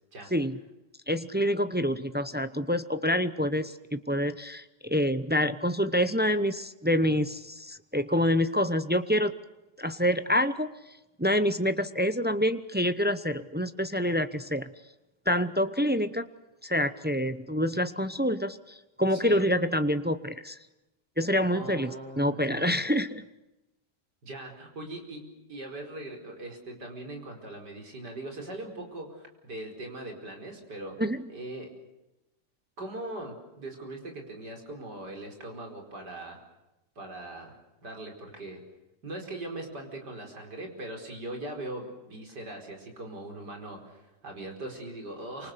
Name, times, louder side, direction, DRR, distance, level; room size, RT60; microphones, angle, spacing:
voice 1, 1.1-9.3 9.8-10.7 11.2-14.7 15.3-16.2 16.6-20.6 21.2-23.2 31.0-31.2, equal, 15° right, 11 dB, 0.4 m, -27 dB
voice 2, 19.1-19.4 21.5-22.8 24.2-31.0 31.3-31.7 32.8-36.4 37.0-37.6 37.8-38.6 39.0-45.5, right 1 dB, 70° right, 3 dB, 5.5 m, -40 dB
28.0 x 25.5 x 6.9 m, 0.97 s
omnidirectional pair, 1.9 m